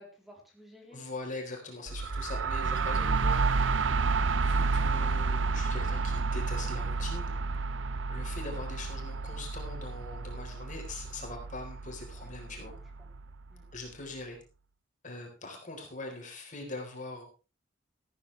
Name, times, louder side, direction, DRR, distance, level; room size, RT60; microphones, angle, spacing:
voice 1, 0.0-1.0 12.2-13.1 13.5-13.7, left 1 dB, ahead, -1 dB, 3.6 m, -55 dB
voice 2, 0.9-3.4 4.4-7.3 8.1-12.7 13.7-14.4 15.0-17.2, left 2 dB, 40° left, 3 dB, 4.0 m, -42 dB
sound 1, 1.9-13.5, right 4 dB, 75° right, 0.7 m, -30 dB
14.5 x 13.5 x 3.3 m, 0.31 s
head